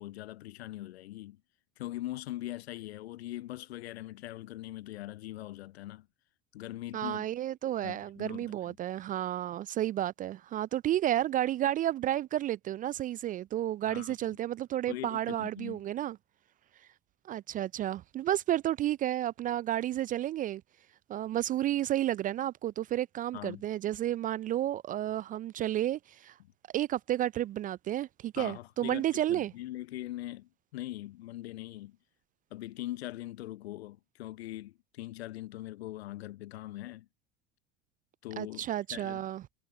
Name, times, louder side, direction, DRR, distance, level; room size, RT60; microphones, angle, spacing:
voice 1, 0.0-1.4 1.8-6.1 6.5-7.3 7.8-8.7 13.9-14.3 14.9-15.8 23.3-23.6 28.4-32.0 32.5-37.1 38.2-39.2, left 15 dB, 70° left, 0.8 m, -41 dB
voice 2, 6.9-16.2 17.3-20.6 21.1-26.4 26.7-29.5 38.4-39.4, right 12 dB, 25° right, 0.3 m, -31 dB
figure-of-eight pair, 70°, 33 cm